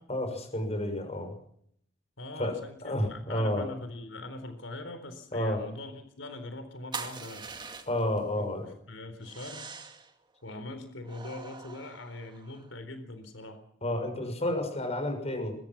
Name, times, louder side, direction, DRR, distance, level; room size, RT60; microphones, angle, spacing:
voice 1, 0.1-1.3 2.4-2.5 2.8-3.7 5.3-5.6 7.9-8.7 13.8-15.6, left 1 dB, 35° left, 7 dB, 6.5 m, -30 dB
voice 2, 2.2-7.5 8.3-9.6 10.4-13.6, left 2 dB, 85° left, 9 dB, 4.0 m, -42 dB
sound 1, 6.9-8.2 9.2-10.1 11.0-12.7, right 5 dB, 25° right, 2.4 m, -43 dB
23.5 x 22.5 x 6.0 m, 0.67 s
head